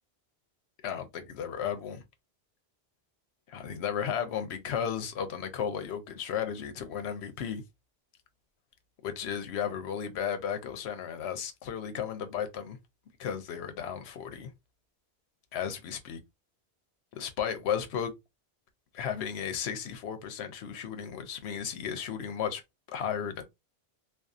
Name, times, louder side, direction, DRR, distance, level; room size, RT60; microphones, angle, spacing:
voice 1, 0.8-2.0 3.5-7.6 9.0-12.8 13.2-14.5 15.5-16.2 17.1-18.1 18.9-22.6 22.9-23.4, left 8 dB, 80° left, 0.9 m, -34 dB
2.6 x 2.3 x 2.3 m
omnidirectional pair, 1.1 m